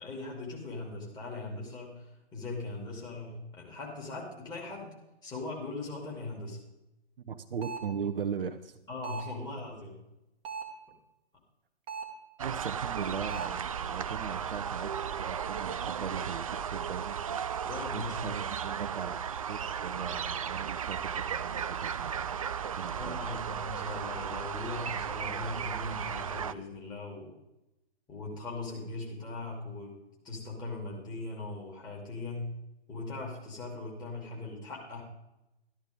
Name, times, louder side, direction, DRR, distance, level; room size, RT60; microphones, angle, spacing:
voice 1, 0.0-2.1 2.3-4.9 5.2-6.6 8.9-10.0 17.6-18.2 23.0-27.3 28.1-30.0 30.2-32.5 32.9-35.0, left 3 dB, 10° left, -2 dB, 3.0 m, -39 dB
voice 2, 7.3-8.8 12.4-17.2 17.9-23.4, right 7 dB, 55° right, 7 dB, 0.9 m, -39 dB
sound 1, 7.6-8.0 9.0-9.4 10.4-10.9 11.9-12.2 13.3-13.7, right 5 dB, 15° right, 1.4 m, -39 dB
sound 2, 12.4-26.5, right 8 dB, 35° right, 0.4 m, -35 dB
13.5 x 12.5 x 3.5 m, 0.91 s
figure-of-eight pair, 130°, 34 cm